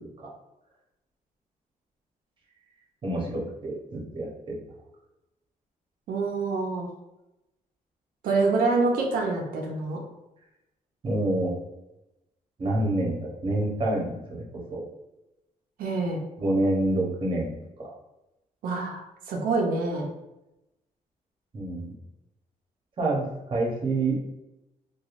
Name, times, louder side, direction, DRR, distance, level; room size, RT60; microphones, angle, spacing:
voice 1, 3.0-4.6 11.0-11.5 12.6-14.4 14.7-14.8 16.4-17.5 17.8-17.9 21.5-21.9 23.0-24.2, right 2 dB, 35° right, -3 dB, 0.8 m, -27 dB
voice 2, 6.1-6.9 8.2-10.0 15.8-16.2 18.6-20.1, right 3 dB, 85° right, 0 dB, 0.5 m, -26 dB
3.0 x 2.2 x 2.4 m, 0.94 s
cardioid pair, 130°, 14 cm